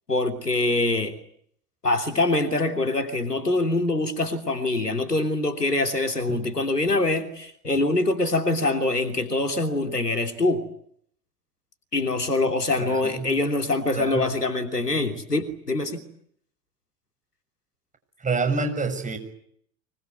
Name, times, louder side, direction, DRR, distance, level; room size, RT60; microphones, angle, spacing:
voice 1, 0.1-1.1 1.8-10.6 11.9-16.0, left 2 dB, 90° left, 3.2 m, -24 dB
voice 2, 12.8-13.3 13.9-14.2 18.2-19.2, right 4 dB, 15° right, 6.9 m, -27 dB
25.0 x 22.0 x 9.5 m
figure-of-eight pair, 80°, 46 cm